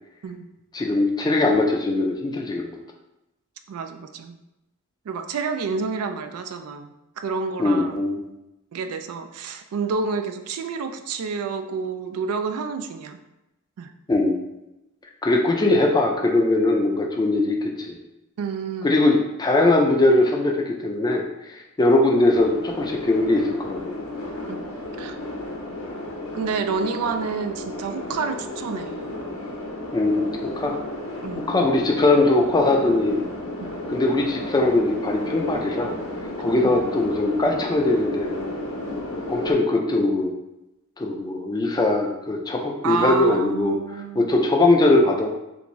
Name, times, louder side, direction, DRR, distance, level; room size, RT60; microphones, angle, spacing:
voice 1, 0.7-2.8 7.6-8.3 14.1-14.5 15.2-18.0 18.8-24.0 29.9-30.8 31.5-33.2 33.9-36.0 36.4-38.3 39.3-40.4 41.0-43.8 44.2-45.3, left 2 dB, 20° left, 1 dB, 0.3 m, -21 dB
voice 2, 3.7-4.4 5.1-8.0 8.7-13.2 13.8-13.9 18.4-19.0 24.5-24.6 25.0-25.2 26.3-29.0 31.2-31.5 33.6-33.7 36.6-36.8 42.8-44.3, right 5 dB, 80° right, 7 dB, 0.3 m, -29 dB
sound 1, 22.3-39.5, left 1 dB, 65° left, 0.6 m, -33 dB
3.4 x 2.6 x 3.0 m, 0.93 s
head